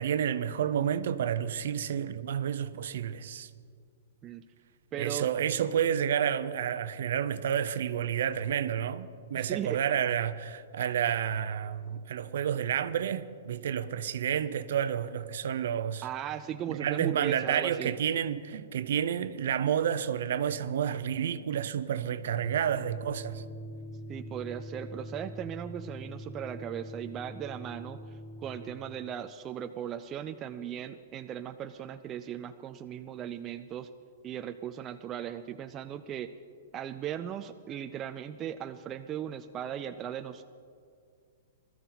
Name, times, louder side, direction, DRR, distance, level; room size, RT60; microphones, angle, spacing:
voice 1, 0.0-3.5 5.0-16.1 16.7-23.5, right 9 dB, 60° right, 0.7 m, -30 dB
voice 2, 4.9-5.3 9.3-9.8 16.0-18.0 24.1-33.9 34.2-36.3 36.7-40.4, right 10 dB, 15° right, 0.3 m, -37 dB
sound 1, 22.4-28.6, equal, 30° left, 3.5 m, -43 dB
20.5 x 13.0 x 4.0 m
hypercardioid pair, 175°, 0 cm